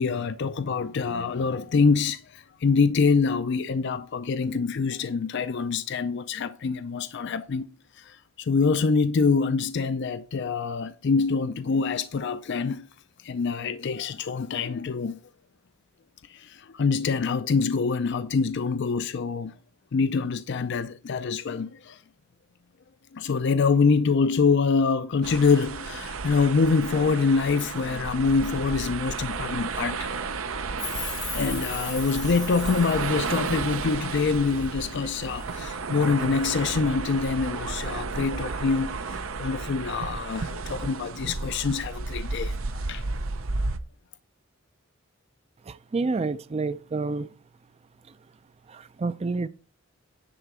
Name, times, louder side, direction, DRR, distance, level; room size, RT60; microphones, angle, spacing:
voice 1, 0.0-7.7 7.9-12.9 13.2-15.2 16.3-19.6 19.9-22.0 23.1-30.1 31.3-43.0, left 4 dB, 60° left, 0.5 m, -25 dB
sound 1, 25.2-43.8, right 4 dB, 85° right, 0.7 m, -33 dB
Chime, 30.8-34.7 35.1-35.6 35.9-36.0, left 6 dB, 20° left, 0.7 m, -38 dB
voice 2, 45.6-47.3 48.7-49.5, right 3 dB, 30° right, 0.4 m, -29 dB
10.0 x 4.1 x 6.0 m
head